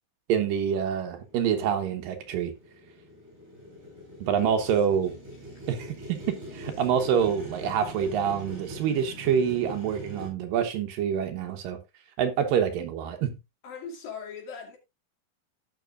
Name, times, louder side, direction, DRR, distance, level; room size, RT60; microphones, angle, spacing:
voice 1, 0.3-2.5 4.2-5.1 5.7-11.8 12.2-13.4, right 8 dB, 75° right, 2.7 m, -26 dB
Motorcycle, 1.1-10.3, right 1 dB, 55° right, 8.0 m, -42 dB
voice 2, 13.6-14.8, left 5 dB, 75° left, 4.2 m, -39 dB
16.5 x 6.0 x 2.5 m
omnidirectional pair, 4.2 m